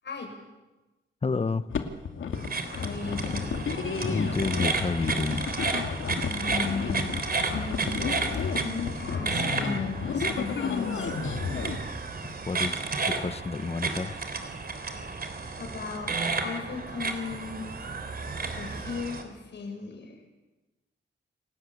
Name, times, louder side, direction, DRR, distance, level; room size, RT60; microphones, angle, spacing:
voice 1, 1.2-1.7 4.0-5.4 12.4-14.2, left 4 dB, 30° left, 13 dB, 1.1 m, -30 dB
sound 1, 1.7-11.8, left 6 dB, 90° left, 2.4 m, -32 dB
sound 2, 2.3-19.2, right 4 dB, 50° right, 3.7 m, -32 dB
voice 2, 2.7-3.5 6.2-7.0 7.5-8.0 8.5-11.2 14.9-15.2 15.6-17.7 18.5-20.2, left 4 dB, 65° left, 3 dB, 7.2 m, -36 dB
29.0 x 18.5 x 8.7 m, 1.1 s
wide cardioid pair, 110°, 20 cm